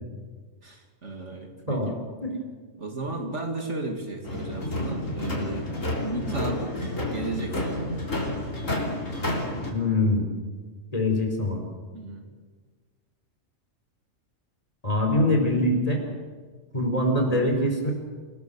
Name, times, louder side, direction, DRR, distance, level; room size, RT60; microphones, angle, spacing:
voice 1, 0.6-2.0 2.8-7.9 11.9-12.3, right 2 dB, 60° right, 3 dB, 2.8 m, -34 dB
sound 1, 4.2-9.7, left 1 dB, 70° left, 4.3 m, -30 dB
voice 2, 9.7-10.3 10.9-11.6 14.8-16.0 16.7-17.9, left 1 dB, 25° left, 2 dB, 4.9 m, -23 dB
28.0 x 19.0 x 7.1 m, 1.5 s
omnidirectional pair, 1.4 m